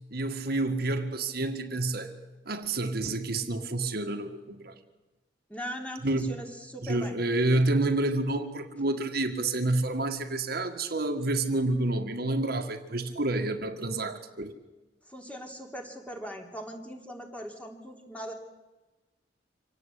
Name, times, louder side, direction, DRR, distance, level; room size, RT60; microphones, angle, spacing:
voice 1, 0.1-2.2 2.5-4.7 6.0-6.4 6.8-14.6, right 2 dB, 55° right, 6 dB, 1.8 m, -29 dB
voice 2, 5.5-7.1 15.1-18.3, equal, 10° left, 3 dB, 3.3 m, -40 dB
26.0 x 18.0 x 8.4 m, 1.1 s
head